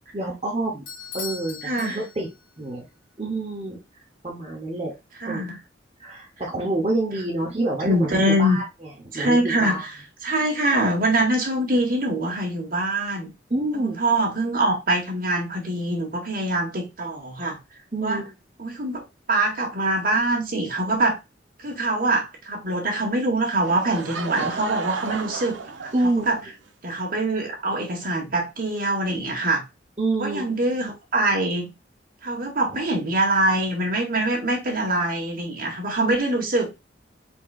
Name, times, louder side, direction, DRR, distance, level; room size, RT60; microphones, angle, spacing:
voice 1, 0.1-0.8 1.1-2.3 2.6-2.8 3.2-3.8 4.2-4.9 5.2-5.4 6.0-8.6 9.1-9.8 13.5-14.0 17.9-18.3 25.9-26.3 30.0-30.5, right 2 dB, 30° right, 1.1 m, -27 dB
Bell / Doorbell, 0.9-2.6, left 5 dB, 90° left, 1.8 m, -38 dB
voice 2, 1.6-2.0 5.2-5.6 7.8-8.6 9.1-9.8 10.2-13.3 13.8-17.6 18.0-18.2 18.6-21.2 21.6-25.9 26.3-26.4 26.8-29.6 30.2-31.7 32.2-36.7, right 1 dB, 45° right, 1.7 m, -24 dB
Laughter / Crowd, 23.6-26.5, right 5 dB, 80° right, 0.7 m, -32 dB
4.4 x 4.4 x 2.5 m
head